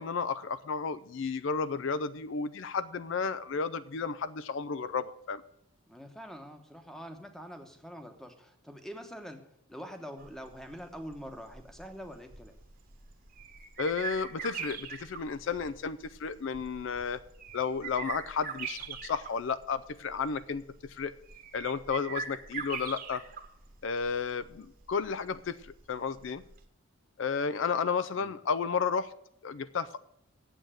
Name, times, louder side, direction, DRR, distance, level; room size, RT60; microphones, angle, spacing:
voice 1, 0.0-5.4 13.8-17.2 17.5-21.1 21.5-23.2 23.8-26.4 27.2-29.1 29.4-30.0, left 5 dB, 60° left, 15 dB, 0.4 m, -32 dB
voice 2, 5.9-9.4 9.7-12.6 28.2-28.4, equal, ahead, 6 dB, 1.0 m, -45 dB
sound 1, 10.2-26.6, right 6 dB, 40° right, 1.1 m, -43 dB
9.0 x 7.8 x 8.9 m, 0.77 s
head